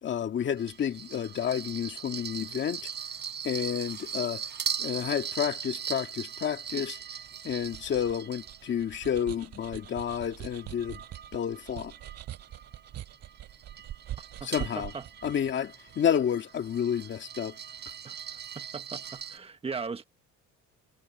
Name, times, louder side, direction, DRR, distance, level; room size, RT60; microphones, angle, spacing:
voice 1, 0.0-2.8 3.4-4.4 4.8-7.0 7.4-11.0 11.3-11.9 14.4-14.9 15.2-17.6, left 8 dB, 35° left, 2.0 m, -30 dB
sound 1, 0.6-9.1 9.6-19.4, right 7 dB, 35° right, 5.7 m, -40 dB
sound 2, 7.0-16.0, right 12 dB, 55° right, 6.2 m, -44 dB
voice 2, 14.4-15.1 18.0-20.1, right 5 dB, 20° right, 1.7 m, -39 dB
cardioid pair, 150°, 31 cm